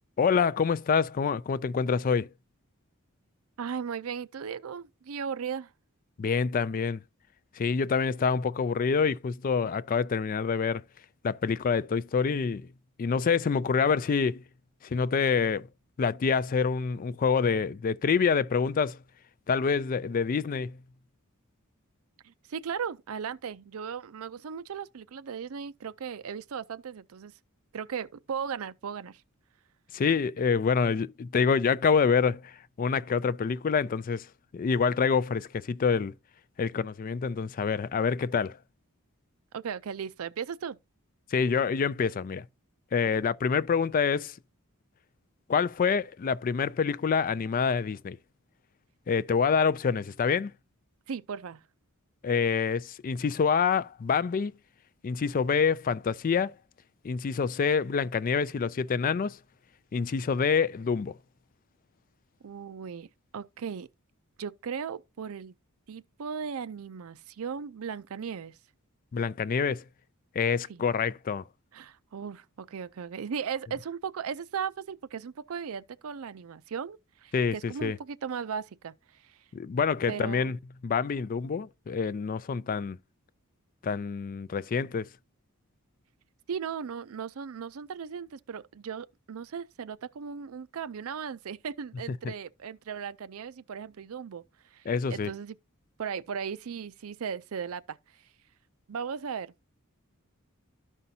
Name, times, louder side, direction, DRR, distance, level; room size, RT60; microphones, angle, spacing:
voice 1, 0.2-2.3 6.2-7.0 7.5-10.8 11.2-12.7 13.0-14.4 14.8-15.7 16.0-19.0 19.5-20.8 29.9-34.3 34.5-36.1 36.6-38.6 41.3-42.4 42.9-44.4 45.5-48.2 49.1-50.5 52.2-54.5 55.0-56.5 57.0-59.4 59.9-61.2 69.1-69.8 70.3-71.4 77.3-78.0 79.5-80.6 80.8-83.0 83.8-85.1 92.2-92.3 94.9-95.3, left 5 dB, 40° left, 0.3 m, -26 dB
voice 2, 3.6-5.7 22.2-27.3 27.7-29.2 39.5-40.8 51.1-51.6 62.4-63.1 63.3-63.9 64.4-65.5 65.9-68.6 70.7-70.8 71.7-78.9 79.2-79.3 80.1-80.5 86.5-94.4 94.7-95.6 96.0-98.0 98.9-99.5, right 7 dB, 70° right, 0.5 m, -37 dB
13.0 x 5.4 x 2.7 m
head